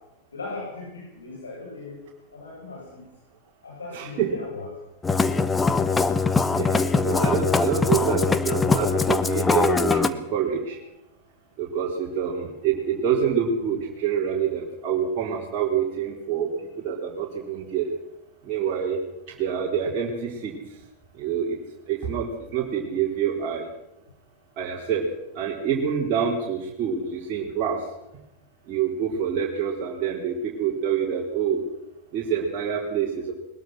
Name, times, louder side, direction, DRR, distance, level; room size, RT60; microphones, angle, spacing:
voice 1, 0.3-2.0 2.3-3.0 3.6-4.7, left 3 dB, 75° left, -3 dB, 7.5 m, -38 dB
voice 2, 3.9-4.4 6.6-10.8 11.6-17.9 18.4-19.0 19.3-20.6 21.1-21.6 21.9-23.7 24.6-25.1 25.3-27.9 28.7-31.6 32.1-33.3, right 7 dB, 35° right, -3 dB, 4.0 m, -26 dB
Musical instrument, 5.0-10.1, left 4 dB, 15° left, 1.4 m, -22 dB
22.0 x 21.0 x 6.2 m, 0.87 s
figure-of-eight pair, 90°, 0 cm